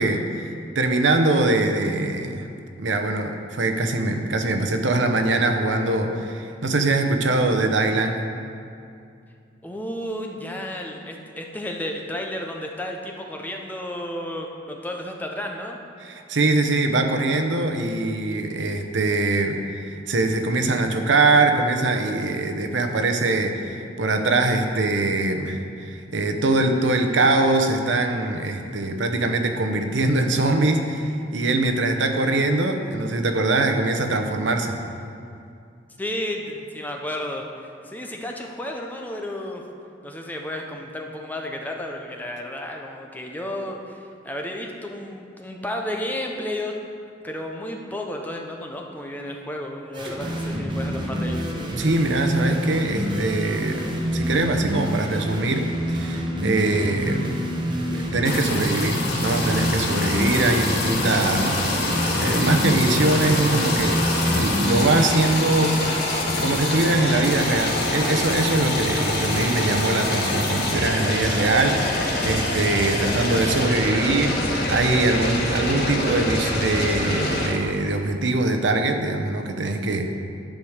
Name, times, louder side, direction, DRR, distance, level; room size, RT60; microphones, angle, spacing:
voice 1, 0.0-2.5 2.8-8.2 16.0-34.8 51.8-57.6 57.9-64.1 64.3-65.8 66.4-80.1, right 2 dB, 80° right, 5 dB, 0.8 m, -22 dB
voice 2, 9.6-15.8 36.0-37.4 37.8-39.6 40.0-46.8 47.2-51.5, left 1 dB, 10° left, 1 dB, 0.7 m, -32 dB
sound 1, 49.9-65.1, equal, 25° right, 1.1 m, -27 dB
sound 2, 58.2-77.5, left 1 dB, 55° left, 1.5 m, -25 dB
10.5 x 4.9 x 6.4 m, 2.5 s
head